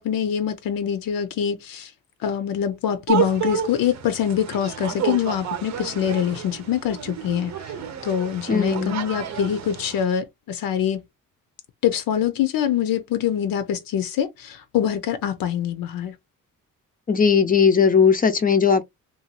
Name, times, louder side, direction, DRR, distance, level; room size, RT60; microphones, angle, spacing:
voice 1, 0.0-1.9 2.2-7.7 8.0-11.0 11.8-16.1, left 9 dB, 80° left, 0.6 m, -24 dB
sound 1, 3.1-10.0, right 8 dB, 55° right, 0.7 m, -30 dB
voice 2, 8.5-9.0 17.1-18.8, left 6 dB, 25° left, 0.4 m, -18 dB
2.6 x 2.3 x 2.8 m
cardioid pair, 125°, 34 cm